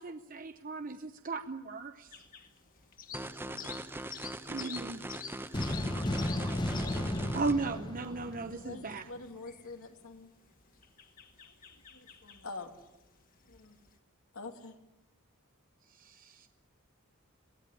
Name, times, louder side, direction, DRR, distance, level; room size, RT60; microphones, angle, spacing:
voice 1, 0.0-2.1 4.5-5.0 7.3-9.0 16.0-16.5, right 3 dB, 40° right, 8 dB, 0.7 m, -36 dB
sound 1, 2.1-14.0, left 7 dB, 40° left, 2.3 m, -49 dB
voice 2, 3.1-3.8 8.5-10.3 11.4-12.7 13.5-13.8 14.3-14.7, left 3 dB, 75° left, 5 dB, 2.6 m, -47 dB
sound 2, 3.1-7.5, right 1 dB, 10° right, 0.9 m, -42 dB
voice 3, 4.2-7.3, right 2 dB, 85° right, 4 dB, 7.3 m, -52 dB
sound 3, 5.5-9.0, left 1 dB, 20° left, 1.1 m, -34 dB
22.5 x 16.5 x 9.7 m, 0.90 s
head